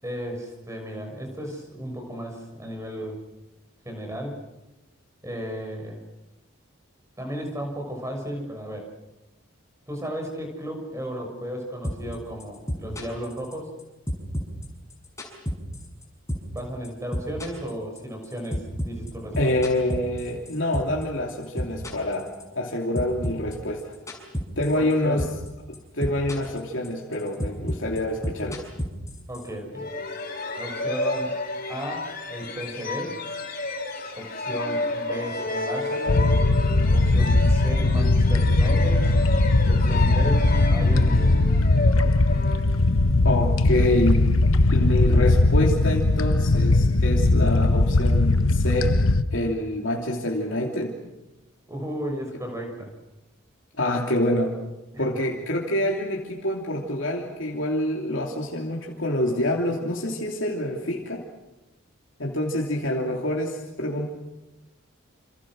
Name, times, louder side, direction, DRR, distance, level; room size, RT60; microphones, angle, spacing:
voice 1, 0.0-3.2 3.8-4.4 5.2-6.0 7.2-8.9 9.9-13.7 16.5-19.5 24.7-25.2 29.3-29.9 30.6-31.4 31.7-33.2 34.2-36.3 36.9-39.1 39.6-41.6 51.7-52.9 54.9-55.0, equal, 15° right, 2 dB, 6.4 m, -34 dB
sound 1, 11.8-12.1 12.4-13.8 14.1-16.0 16.3-16.6 16.8-21.0 21.3-22.7 22.9-24.9 25.2-25.5 25.7-26.6 26.8-29.5, equal, 15° left, 6.4 m, -30 dB
voice 2, 19.4-24.0 24.6-25.2 25.7-28.6 43.2-44.3 44.7-49.0 49.3-50.9 53.8-54.5 55.0-61.2 62.2-64.1, left 1 dB, 65° left, -1 dB, 3.0 m, -26 dB
sound 2, 29.7-43.2, left 2 dB, 45° left, 6.8 m, -31 dB
sound 3, 36.1-49.2, left 2 dB, 90° left, 1.1 m, -19 dB
28.5 x 28.0 x 6.3 m, 0.98 s
head